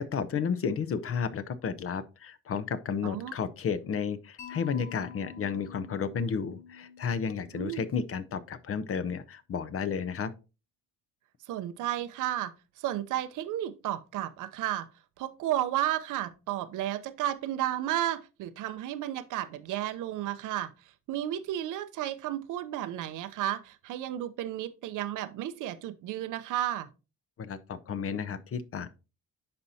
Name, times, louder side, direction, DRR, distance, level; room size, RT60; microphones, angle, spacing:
voice 1, 0.0-10.3 27.4-28.9, left 6 dB, 50° left, 0.7 m, -32 dB
voice 2, 3.0-3.3 7.5-7.8 11.5-14.9 15.2-20.7 21.1-26.9, right 12 dB, 85° right, 0.7 m, -33 dB
Mallet percussion, 4.4-8.4, left 7 dB, 30° left, 3.9 m, -48 dB
10.5 x 4.3 x 2.7 m
cardioid pair, 90°, 30 cm